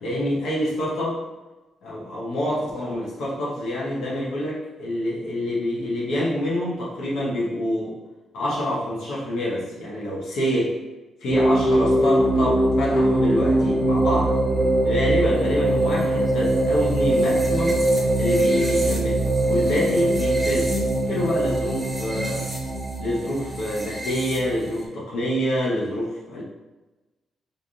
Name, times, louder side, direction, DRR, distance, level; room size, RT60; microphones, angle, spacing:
voice 1, 0.0-1.2 1.8-8.0 8.3-10.7 11.2-14.4 14.8-17.8 18.2-19.2 19.5-20.7 21.1-22.5 23.0-26.4, equal, 65° left, -5 dB, 1.0 m, -26 dB
sound 1, 11.3-24.8, right 1 dB, 5° right, 0.6 m, -22 dB
3.4 x 2.7 x 3.6 m, 1.1 s
cardioid pair, 180°, 0 cm